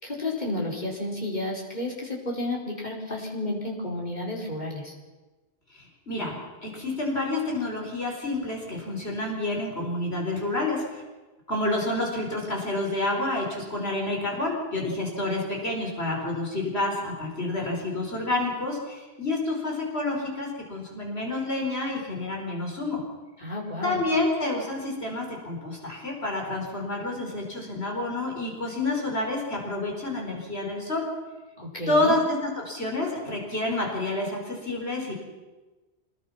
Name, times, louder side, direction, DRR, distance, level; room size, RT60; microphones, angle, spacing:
voice 1, 0.0-4.9 23.4-24.0 31.6-32.2, left 2 dB, 40° left, -2 dB, 5.3 m, -31 dB
voice 2, 5.7-6.4 6.6-11.0 11.5-23.0 23.8-31.0 31.9-32.2 32.6-35.1, left 2 dB, 70° left, 0 dB, 5.3 m, -29 dB
26.0 x 21.5 x 6.0 m, 1.2 s
omnidirectional pair, 1.1 m